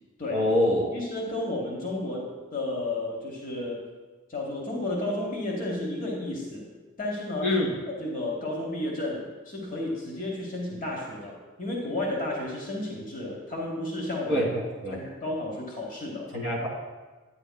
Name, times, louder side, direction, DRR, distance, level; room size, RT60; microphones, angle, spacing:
voice 1, 0.3-0.9 7.4-7.7 14.3-15.0 16.3-16.7, left 1 dB, 85° left, -1 dB, 1.7 m, -25 dB
voice 2, 0.9-3.8 4.3-6.7 7.0-7.5 8.0-14.5 14.9-16.3, left 1 dB, 40° left, -1 dB, 1.0 m, -32 dB
9.7 x 9.1 x 2.2 m, 1.2 s
head